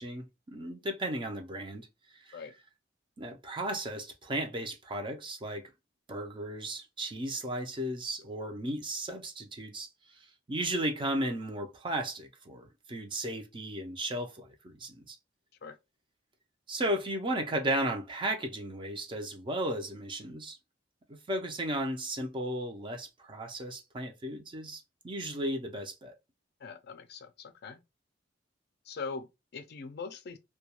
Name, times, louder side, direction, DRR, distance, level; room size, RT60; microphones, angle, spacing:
voice 1, 0.0-1.9 2.3-2.4 3.2-5.7 6.1-9.9 10.5-15.2 16.7-20.6 21.3-26.1, right 1 dB, 25° right, 0.5 m, -35 dB
voice 2, 26.6-27.8 28.9-30.4, left 4 dB, 55° left, 0.4 m, -42 dB
2.2 x 2.2 x 2.8 m
head